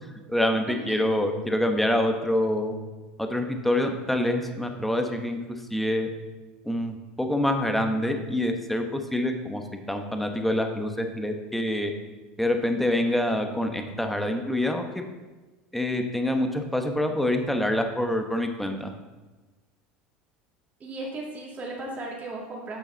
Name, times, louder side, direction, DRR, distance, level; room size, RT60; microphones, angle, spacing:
voice 1, 0.3-2.7 3.2-5.4 5.7-6.1 6.6-9.6 9.9-11.9 12.4-15.0 15.7-18.9, left 1 dB, 5° left, 4 dB, 1.0 m, -26 dB
voice 2, 20.8-22.8, right 2 dB, 30° right, -3 dB, 2.5 m, -36 dB
8.6 x 6.2 x 3.9 m, 1.2 s
supercardioid pair, 105°, 5 cm